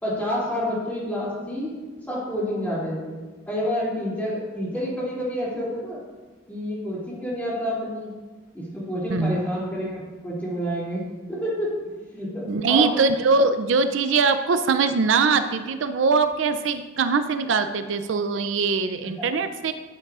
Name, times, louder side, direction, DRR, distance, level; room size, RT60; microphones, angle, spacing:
voice 1, 0.0-1.7 2.1-3.1 3.5-6.0 6.5-8.1 8.5-11.7 12.1-13.0 19.2-19.3, equal, 10° left, -7 dB, 2.7 m, -28 dB
voice 2, 12.5-19.7, right 4 dB, 75° right, 10 dB, 0.4 m, -22 dB
12.0 x 7.7 x 2.4 m, 1.3 s
head